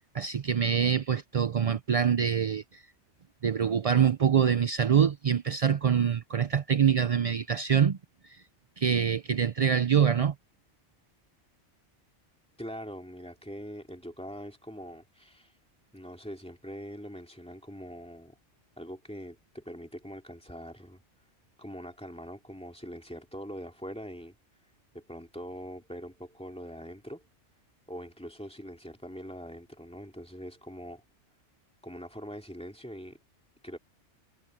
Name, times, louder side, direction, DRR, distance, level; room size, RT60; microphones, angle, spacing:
voice 1, 0.1-2.8 3.4-8.0 8.2-8.4 8.8-10.3, right 7 dB, 50° right, 0.4 m, -25 dB
voice 2, 12.6-15.6 15.9-18.4 18.8-21.0 21.6-24.3 24.9-27.3 27.9-31.0 31.8-33.2 33.6-33.8, equal, 5° left, 2.5 m, -43 dB
omnidirectional pair, 1.3 m